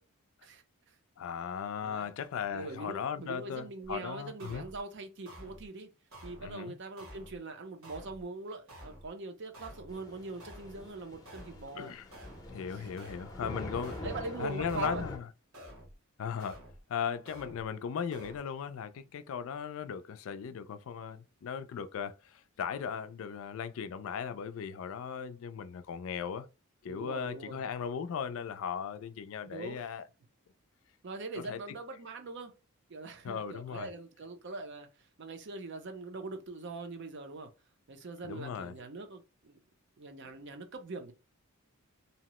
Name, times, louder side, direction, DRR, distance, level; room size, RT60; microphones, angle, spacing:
voice 1, 0.4-1.0 1.8-2.1 2.5-5.9 6.2-11.9 12.7-13.3 14.0-15.0 26.9-27.6 29.5-29.9 31.0-32.5 32.9-37.5 37.9-39.6 40.0-41.1, right 3 dB, 55° right, 0.5 m, -42 dB
voice 2, 1.2-4.6 6.4-6.7 11.8-12.1 12.5-14.0 14.4-15.3 16.2-16.6 16.9-26.5 26.8-30.0 31.5-31.6 33.2-33.9 38.2-38.7, left 7 dB, 65° left, 0.3 m, -37 dB
sound 1, 3.8-4.0 4.4-4.8 5.3-5.7 6.1-6.5 7.0-7.4 7.8-8.3 8.7-9.1 9.5-10.0 10.4-10.8 11.3-11.7 12.1-12.5 13.0-13.4 13.8-14.3 14.7-15.1 15.5-16.0 16.4-16.8 17.3-17.7 18.1-18.4, equal, 75° right, 1.0 m, -50 dB
Thunder / Rain, 9.9-15.2, left 1 dB, 15° left, 0.6 m, -44 dB
2.8 x 2.0 x 2.9 m
head